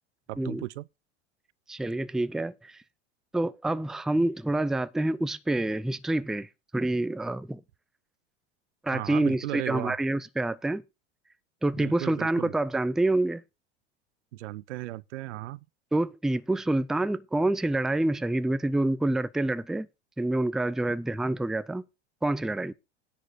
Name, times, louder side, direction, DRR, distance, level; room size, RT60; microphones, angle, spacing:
voice 1, 0.3-0.9 8.9-10.0 11.8-12.5 14.3-15.6, right 16 dB, 75° right, 0.6 m, -36 dB
voice 2, 1.7-2.8 3.3-7.6 8.8-10.8 11.6-13.4 15.9-19.9 20.2-21.8 22.2-22.7, right 2 dB, ahead, 0.5 m, -27 dB
10.0 x 4.8 x 7.8 m
hypercardioid pair, 95°, 35 cm